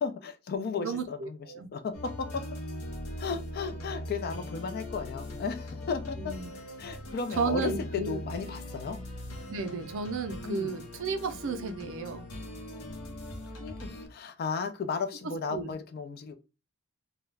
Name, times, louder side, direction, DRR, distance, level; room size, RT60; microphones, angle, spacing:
voice 1, 0.0-2.5 3.2-9.0 10.4-10.8 13.4-16.3, left 5 dB, 45° left, 0.3 m, -35 dB
voice 2, 0.8-1.7 6.2-6.5 7.4-8.2 9.5-12.3 15.5-15.7, right 4 dB, 60° right, 0.4 m, -33 dB
sound 1, 1.9-14.1, left 1 dB, 75° left, 0.7 m, -40 dB
2.3 x 2.0 x 3.2 m
head